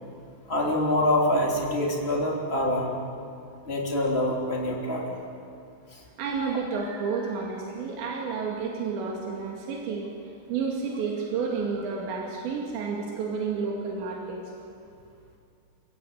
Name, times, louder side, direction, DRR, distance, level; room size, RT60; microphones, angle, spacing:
voice 1, 0.5-2.9 3.6-5.1 5.9-6.0, left 1 dB, 15° left, -2 dB, 3.1 m, -25 dB
voice 2, 6.2-10.1 10.5-14.4, right 5 dB, 90° right, -1 dB, 4.4 m, -30 dB
27.5 x 15.0 x 9.2 m, 2.4 s
omnidirectional pair, 5.0 m